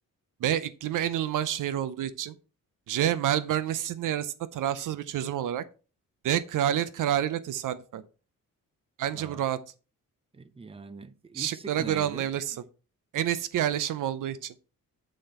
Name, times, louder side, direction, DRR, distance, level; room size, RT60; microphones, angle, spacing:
voice 1, 0.4-2.4 2.9-5.6 6.2-8.0 9.0-9.6 11.3-12.6 13.1-14.5, right 11 dB, 75° right, 0.6 m, -28 dB
voice 2, 9.1-9.4 10.3-12.3, right 4 dB, 15° right, 0.6 m, -42 dB
7.7 x 5.2 x 4.3 m
wide cardioid pair, 145°, 32 cm